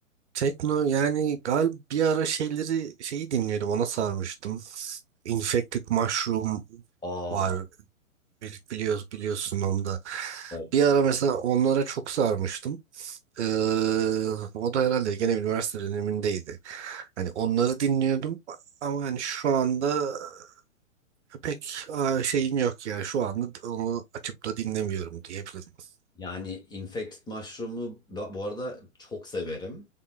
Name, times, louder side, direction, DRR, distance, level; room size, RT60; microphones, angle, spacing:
voice 1, 0.3-5.0 5.2-6.8 7.3-7.6 8.4-20.5 21.3-25.6, right 7 dB, 55° right, 0.8 m, -27 dB
voice 2, 7.0-7.5 10.5-10.7 26.2-29.9, left 1 dB, 10° left, 1.1 m, -36 dB
3.7 x 3.7 x 2.3 m
figure-of-eight pair, 120°, 41 cm